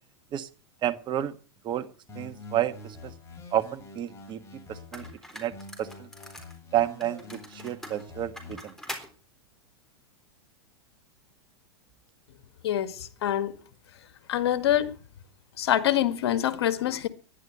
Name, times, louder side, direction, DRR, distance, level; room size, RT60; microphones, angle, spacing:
voice 1, 0.8-1.3 1.6-1.9 2.1-3.1 3.5-5.1 5.3-6.1 6.7-8.7, right 12 dB, 35° right, 1.4 m, -30 dB
sound 1, 2.1-5.1 5.5-8.5, left 2 dB, 20° left, 5.8 m, -46 dB
sound 2, 4.3-4.4 4.9-6.6 7.0-9.1, left 1 dB, 5° left, 3.8 m, -43 dB
voice 2, 12.6-13.6 14.3-14.9 15.6-17.1, left 11 dB, 70° left, 1.8 m, -25 dB
11.5 x 10.5 x 7.8 m
hypercardioid pair, 105°, 14 cm